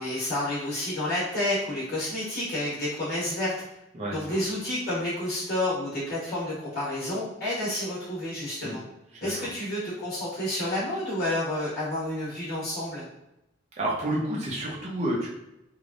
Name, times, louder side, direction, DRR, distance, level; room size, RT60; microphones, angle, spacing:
voice 1, 0.0-3.5 4.1-8.8 9.2-13.1, left 1 dB, 55° left, -8 dB, 1.2 m, -30 dB
voice 2, 13.8-15.3, right 1 dB, 35° right, -4 dB, 0.7 m, -29 dB
3.3 x 2.3 x 2.6 m, 0.87 s
head